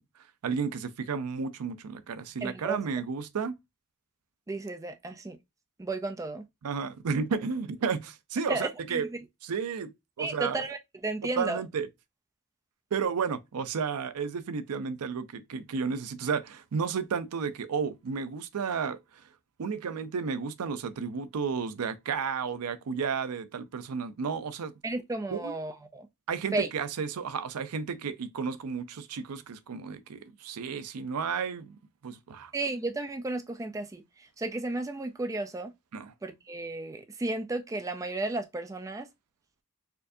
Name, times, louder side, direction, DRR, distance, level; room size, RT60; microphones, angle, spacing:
voice 1, 0.4-3.5 6.6-9.1 9.4-9.9 10.2-10.6 11.4-11.9 12.9-19.0 19.6-24.7 25.3-25.5 26.3-31.8 32.0-32.5 35.9-36.1, right 5 dB, 80° right, 0.5 m, -32 dB
voice 2, 2.4-2.8 4.5-5.4 5.8-6.4 8.5-9.2 10.2-11.6 24.8-26.1 26.5-26.7 32.5-35.7 36.2-39.1, right 2 dB, 15° right, 0.4 m, -33 dB
4.4 x 2.6 x 2.5 m
head